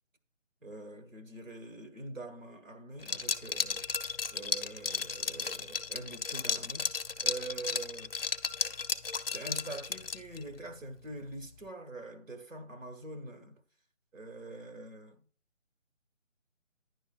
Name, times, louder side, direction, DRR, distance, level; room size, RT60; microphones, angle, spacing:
voice 1, 0.6-8.2 9.3-13.6 14.1-15.2, right 2 dB, 85° right, 1.5 m, -44 dB
Liquid, 3.0-10.4, left 5 dB, 50° left, 0.5 m, -34 dB
10.0 x 5.2 x 2.3 m
figure-of-eight pair, 165°, 38 cm